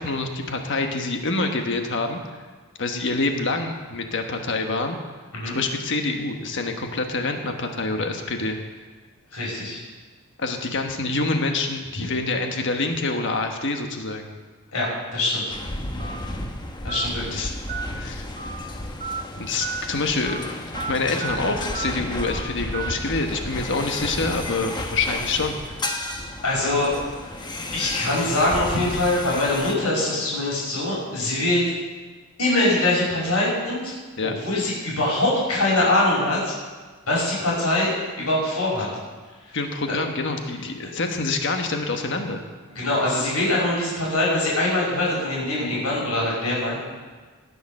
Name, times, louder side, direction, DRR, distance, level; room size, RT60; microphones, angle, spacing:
voice 1, 0.0-2.2 2.8-5.0 5.4-8.6 10.4-14.3 17.3-17.6 18.0-18.2 19.4-20.4 20.9-25.6 34.2-34.4 39.5-42.4, left 3 dB, 55° left, 4 dB, 1.3 m, -26 dB
voice 2, 9.3-9.8 14.7-15.4 16.8-17.5 19.5-19.6 26.4-27.0 27.7-31.6 32.4-33.9 34.2-36.5 37.1-38.9 39.5-39.6 39.9-40.0 40.8-40.9 42.7-46.8, left 2 dB, 90° left, -5 dB, 5.4 m, -23 dB
sound 1, 15.5-29.8, left 1 dB, 20° left, 1.0 m, -33 dB
Telephone, 16.0-16.2 16.9-17.1 17.7-17.9 18.4-18.6 19.0-19.2 19.6-19.8 20.2-20.4 20.7-20.9 21.2-21.4 21.7-21.9 22.2-22.4 22.7-22.9, right 5 dB, 35° right, 0.7 m, -32 dB
18.0 x 6.8 x 6.5 m, 1.4 s
head